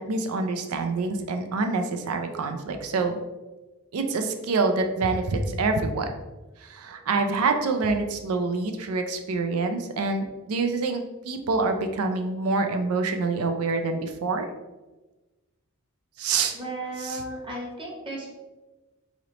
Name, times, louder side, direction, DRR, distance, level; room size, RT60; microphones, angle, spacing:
voice 1, 0.0-3.1 3.9-6.1 6.6-14.5 16.2-16.6 17.0-17.2, right 3 dB, 85° right, 6 dB, 0.4 m, -26 dB
voice 2, 16.5-18.3, right 1 dB, 25° right, -2 dB, 0.8 m, -35 dB
3.8 x 3.1 x 2.9 m, 1.1 s
head